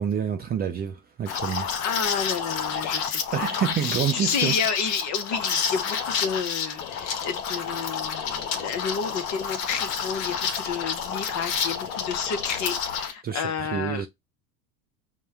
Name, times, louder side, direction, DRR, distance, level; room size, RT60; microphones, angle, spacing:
voice 1, 0.0-1.6 3.3-4.5 13.2-14.1, right 8 dB, 20° right, 0.4 m, -27 dB
Liquid, 1.3-13.1, left 6 dB, 60° left, 0.9 m, -29 dB
voice 2, 1.5-3.5 3.8-14.1, left 6 dB, 40° left, 1.0 m, -31 dB
5.4 x 2.2 x 3.4 m
hypercardioid pair, 85°, 45 cm